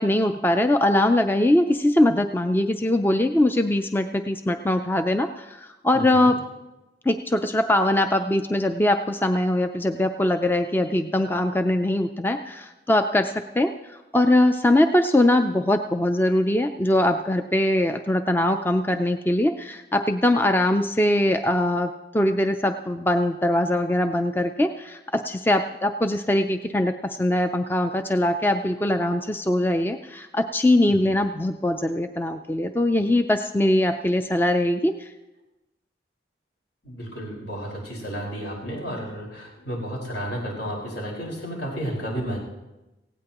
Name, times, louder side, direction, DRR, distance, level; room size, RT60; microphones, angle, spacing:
voice 1, 0.0-6.4 7.1-35.1, left 1 dB, 10° left, 7 dB, 0.4 m, -22 dB
voice 2, 5.9-6.3 30.9-31.1 36.8-42.4, equal, 80° left, -3 dB, 4.8 m, -32 dB
18.0 x 16.5 x 3.0 m, 1.0 s
head